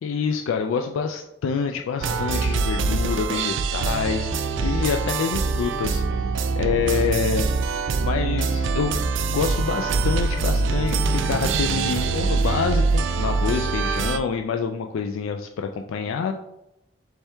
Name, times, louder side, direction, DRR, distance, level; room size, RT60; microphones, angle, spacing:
voice 1, 0.0-6.0 6.5-7.5 8.0-9.0 9.3-16.3, left 6 dB, 80° left, 5 dB, 0.3 m, -27 dB
sound 1, 2.0-14.2, right 4 dB, 70° right, 0.4 m, -24 dB
4.4 x 3.3 x 3.4 m, 0.89 s
head